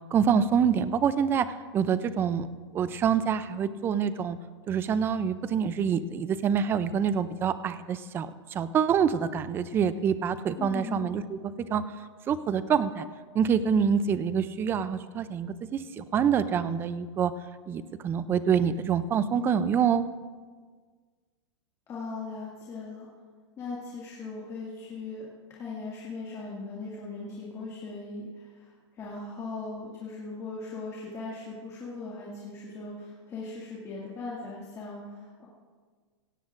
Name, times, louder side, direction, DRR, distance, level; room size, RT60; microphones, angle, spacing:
voice 1, 0.1-1.5 1.7-2.5 2.7-4.4 4.7-11.4 11.7-11.8 12.3-13.1 13.3-17.3 17.7-20.1, right 7 dB, 15° right, 14 dB, 0.4 m, -26 dB
voice 2, 10.6-11.1 21.9-23.1 23.6-35.5, left 3 dB, 20° left, -6 dB, 2.0 m, -39 dB
16.5 x 16.5 x 2.5 m, 1.5 s
supercardioid pair, 155°, 16 cm